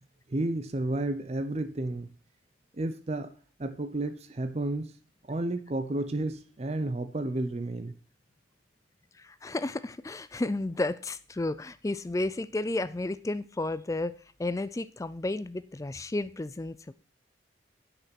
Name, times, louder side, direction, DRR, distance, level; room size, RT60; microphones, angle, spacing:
voice 1, 0.3-2.1 2.7-3.3 3.6-4.9 5.3-7.9, right 2 dB, 35° right, 9 dB, 0.5 m, -31 dB
voice 2, 9.2-14.1 14.4-16.9, left 2 dB, 15° left, 15 dB, 0.3 m, -32 dB
8.3 x 5.9 x 5.9 m, 0.41 s
head